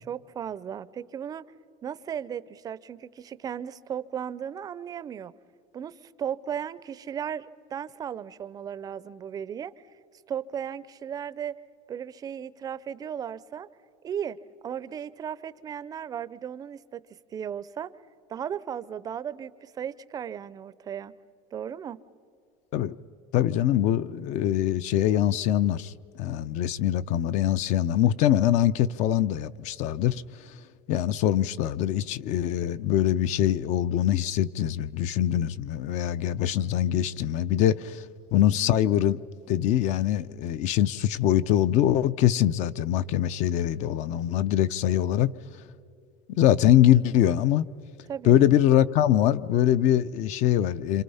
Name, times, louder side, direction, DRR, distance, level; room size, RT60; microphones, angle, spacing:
voice 1, 0.1-1.4 1.8-5.3 5.7-9.7 10.3-11.6 11.9-13.7 14.0-17.9 18.3-21.1 21.5-22.0 48.1-48.4, right 8 dB, 25° right, 0.5 m, -36 dB
voice 2, 23.3-30.2 30.9-38.0 38.3-39.2 39.5-45.3 46.4-47.6 48.2-51.0, left 11 dB, 50° left, 0.6 m, -23 dB
27.5 x 27.0 x 5.6 m
cardioid pair, 150°, 16 cm